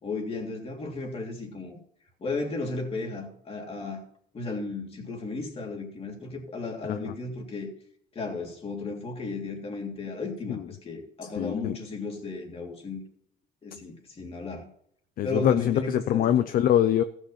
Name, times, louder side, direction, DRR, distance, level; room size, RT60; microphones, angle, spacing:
voice 1, 0.0-1.8 2.2-4.0 4.3-7.7 8.1-13.0 13.6-14.7 15.2-16.3, left 3 dB, 35° left, 3.2 m, -34 dB
voice 2, 6.8-7.1 10.5-10.7 11.4-11.8 15.2-17.0, left 11 dB, 55° left, 0.6 m, -24 dB
15.0 x 6.4 x 5.7 m
cardioid pair, 110°, 17 cm